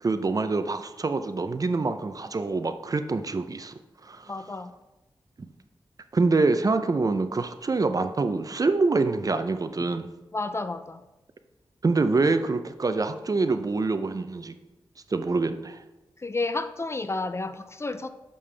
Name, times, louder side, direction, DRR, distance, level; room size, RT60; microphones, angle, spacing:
voice 1, 0.0-3.7 4.0-4.3 6.1-10.1 11.8-14.5 15.1-15.8, right 3 dB, 40° right, 10 dB, 0.4 m, -25 dB
voice 2, 4.3-4.7 10.3-11.0 16.2-18.1, left 3 dB, 30° left, 10 dB, 0.4 m, -31 dB
6.7 x 5.3 x 3.3 m, 1.0 s
cardioid pair, 60°, 10 cm